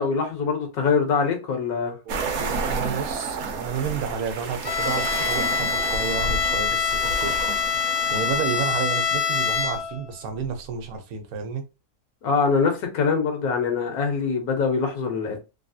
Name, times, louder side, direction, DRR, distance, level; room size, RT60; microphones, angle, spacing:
voice 1, 0.0-2.0 12.2-15.4, left 5 dB, 85° left, 1.4 m, -23 dB
voice 2, 2.0-7.3 8.1-11.6, right 6 dB, 80° right, 1.2 m, -31 dB
sound 1, 2.1-9.8, right 4 dB, 60° right, 0.8 m, -31 dB
Bowed string instrument, 4.6-10.1, left 6 dB, 70° left, 0.5 m, -25 dB
3.4 x 2.3 x 2.6 m
omnidirectional pair, 1.5 m